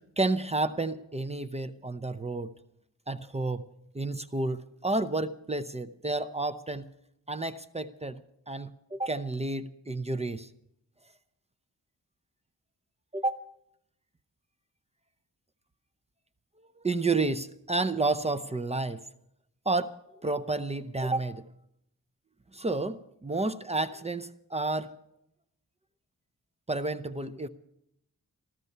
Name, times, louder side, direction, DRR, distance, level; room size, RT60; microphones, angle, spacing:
voice 1, 0.2-2.5 3.1-3.6 3.9-6.9 7.3-8.2 8.5-10.5 13.1-13.4 16.8-19.0 19.7-19.9 20.2-21.4 22.5-24.9 26.7-27.5, right 2 dB, 20° right, 10 dB, 0.6 m, -30 dB
15.0 x 13.5 x 5.5 m, 0.78 s
wide cardioid pair, 105°, 32 cm